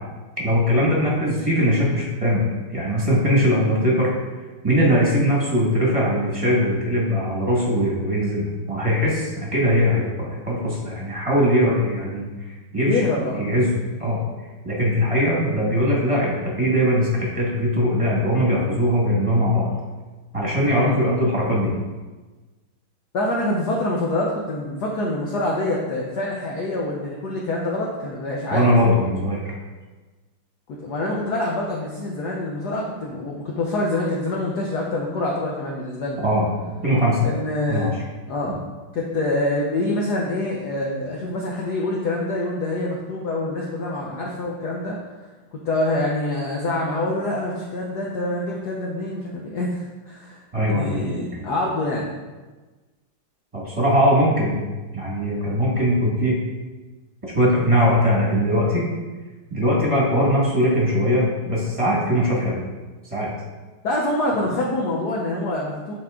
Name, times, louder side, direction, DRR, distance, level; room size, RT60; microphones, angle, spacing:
voice 1, 0.4-2.4 2.7-4.1 4.6-12.3 12.7-13.0 13.4-13.7 14.0-14.2 14.6-19.7 20.3-21.7 28.5-29.4 36.2-36.5 36.8-37.2 37.7-37.9 38.5-38.6 50.5-50.9 53.5-54.6 54.9-56.4 57.3-58.8 59.5-62.6 63.1-63.3, equal, 15° right, -5 dB, 1.6 m, -20 dB
voice 2, 12.8-13.4 14.0-14.1 20.7-21.0 23.1-28.6 30.7-36.2 37.2-37.9 38.3-38.6 38.9-45.0 45.5-52.1 63.8-65.9, left 2 dB, 60° left, -2 dB, 1.2 m, -26 dB
11.5 x 4.1 x 3.7 m, 1.3 s
omnidirectional pair, 2.4 m